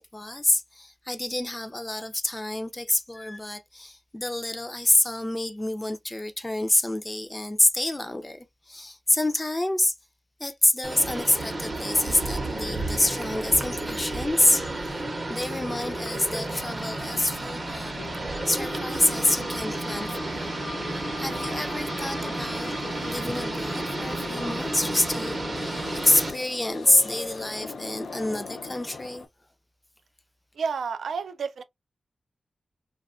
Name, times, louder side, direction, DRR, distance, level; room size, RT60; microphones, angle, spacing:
voice 1, 0.0-9.9 10.4-17.9 18.5-20.5 20.9-22.7 23.1-25.7 26.0-29.3, left 1 dB, 15° left, 0.4 m, -27 dB
sound 1, 10.8-26.3, right 2 dB, 35° right, 0.6 m, -32 dB
sound 2, 13.5-29.3, left 4 dB, 75° left, 0.5 m, -41 dB
voice 2, 30.5-31.6, right 5 dB, 85° right, 0.3 m, -30 dB
2.7 x 2.2 x 2.4 m
wide cardioid pair, 130°, 0 cm